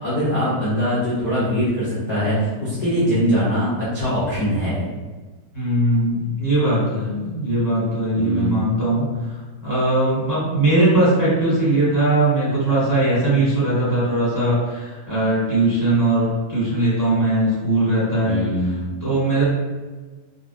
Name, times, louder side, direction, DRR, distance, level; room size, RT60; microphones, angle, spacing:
voice 1, 0.0-4.8 8.1-8.5 18.2-18.9, equal, 35° left, -12 dB, 0.7 m, -22 dB
voice 2, 5.5-18.4 19.0-19.4, right 1 dB, 10° right, -10 dB, 1.2 m, -20 dB
3.9 x 2.2 x 2.5 m, 1.3 s
omnidirectional pair, 2.0 m